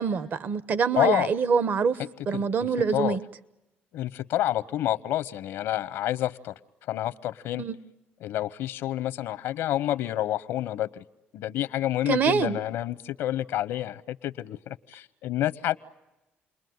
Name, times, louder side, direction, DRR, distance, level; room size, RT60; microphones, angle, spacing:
voice 1, 0.0-2.0 2.3-3.2 7.6-7.8 12.1-12.6, right 6 dB, 55° right, 16 dB, 1.2 m, -25 dB
voice 2, 1.0-1.3 2.3-3.2 3.9-6.5 6.9-7.6 8.2-11.0 11.3-15.8, left 13 dB, 85° left, 15 dB, 0.9 m, -29 dB
29.5 x 21.5 x 9.4 m, 1.0 s
cardioid pair, 95°, 4 cm